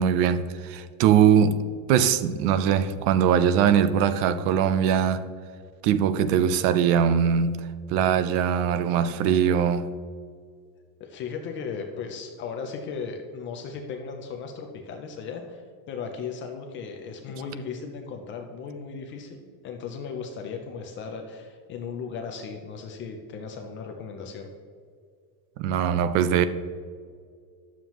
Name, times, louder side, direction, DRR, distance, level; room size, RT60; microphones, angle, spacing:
voice 1, 0.0-1.6 1.9-5.3 5.8-9.9 25.6-26.5, right 8 dB, 70° right, 0.7 m, -21 dB
voice 2, 11.0-24.5, left 5 dB, 30° left, 0.3 m, -36 dB
11.0 x 7.2 x 3.0 m
cardioid pair, 170°, 48 cm